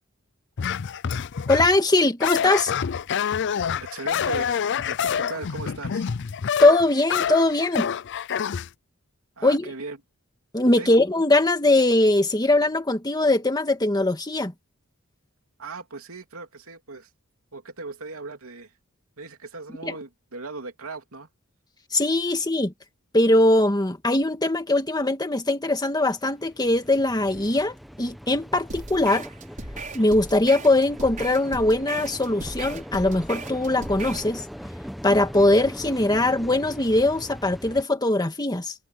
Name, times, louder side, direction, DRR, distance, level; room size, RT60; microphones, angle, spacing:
sound 1, 0.6-1.8 2.2-8.7, left 7 dB, 55° left, 0.5 m, -27 dB
voice 1, 1.5-2.7 6.6-7.9 9.4-9.7 10.5-14.5 19.8-20.0 21.9-22.7 23.1-29.2 29.9-34.5 35.0-38.7, left 2 dB, 20° left, 1.8 m, -21 dB
voice 2, 3.8-6.1 9.4-10.0 10.7-10.9 15.6-17.1 17.5-18.7 19.2-21.3, right 3 dB, 70° right, 3.2 m, -38 dB
sound 2, 25.9-37.8, equal, ahead, 1.5 m, -40 dB
sound 3, 28.7-34.3, right 2 dB, 35° right, 5.3 m, -37 dB
head